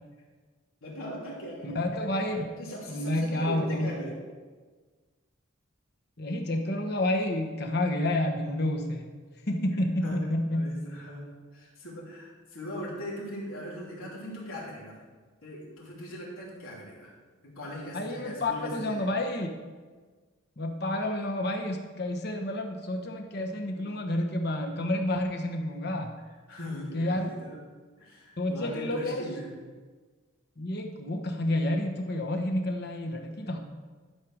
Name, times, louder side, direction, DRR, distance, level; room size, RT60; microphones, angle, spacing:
voice 1, 0.8-1.8 2.6-4.3 9.6-9.8 10.0-15.1 15.4-17.1 17.4-19.1 26.5-27.6 28.0-29.5, equal, 90° left, -5 dB, 3.3 m, -39 dB
voice 2, 1.6-2.5 2.9-4.1 6.2-10.7 17.9-19.5 20.6-26.1 26.9-27.3 28.4-29.2 30.6-33.6, left 1 dB, 50° left, 4 dB, 1.2 m, -30 dB
12.0 x 5.0 x 6.3 m, 1.4 s
head